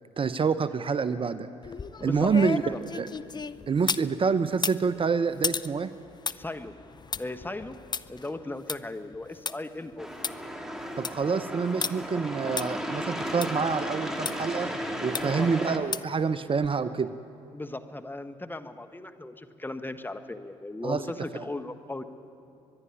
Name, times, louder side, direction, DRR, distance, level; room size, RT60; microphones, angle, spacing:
voice 1, 0.2-1.5 2.0-3.1 3.7-5.9 11.0-14.7 15.0-17.1 20.8-21.0 21.3-21.4, right 5 dB, 40° right, 13 dB, 0.8 m, -27 dB
sound 1, 1.6-4.1 4.5-9.5 9.9-10.0 10.2-10.3 10.8-11.2 11.8-11.9 12.6-12.7 13.4-13.5 14.2-14.3 15.1-15.5 15.9-16.2 16.6-16.7, left 5 dB, 30° left, 0.6 m, -34 dB
voice 2, 2.0-2.3 2.6-2.8 6.4-6.7 7.2-7.7 8.1-10.1 15.1-15.5 17.5-22.0, left 2 dB, 15° left, 9 dB, 1.4 m, -37 dB
sound 2, 10.0-15.8, equal, 5° right, 2.6 m, -34 dB
23.5 x 11.0 x 9.9 m, 2.7 s
hypercardioid pair, 55°, 14 cm